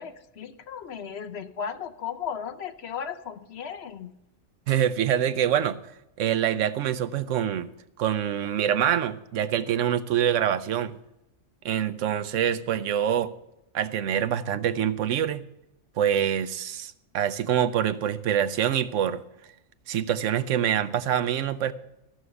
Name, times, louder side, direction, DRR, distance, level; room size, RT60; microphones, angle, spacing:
voice 1, 0.0-4.1, left 7 dB, 60° left, 9 dB, 1.0 m, -36 dB
voice 2, 4.7-5.8 6.2-7.7 8.0-11.0 11.6-13.3 13.7-15.5 16.0-19.2 19.9-21.7, right 9 dB, 90° right, 12 dB, 1.0 m, -25 dB
14.5 x 6.4 x 6.9 m, 0.86 s
omnidirectional pair, 1.2 m